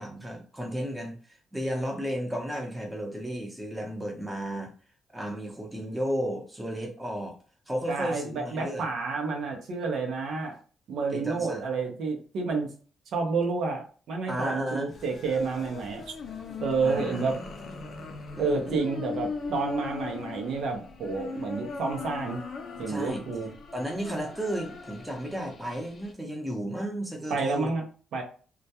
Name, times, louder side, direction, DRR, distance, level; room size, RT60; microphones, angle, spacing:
voice 1, 0.0-4.7 5.1-7.4 7.7-8.9 11.1-11.6 14.3-14.9 16.8-17.3 18.4-18.8 22.9-23.2 23.7-27.7, equal, 10° right, 1 dB, 0.7 m, -33 dB
voice 2, 7.9-10.6 10.9-12.7 13.1-16.0 16.6-17.4 18.4-22.4 22.8-23.5 27.3-27.9 28.1-28.2, right 4 dB, 70° right, 1 dB, 0.6 m, -30 dB
sound 1, 14.9-26.1, left 4 dB, 50° left, 0.4 m, -39 dB
2.2 x 2.1 x 2.7 m, 0.40 s
cardioid pair, 90°, 0 cm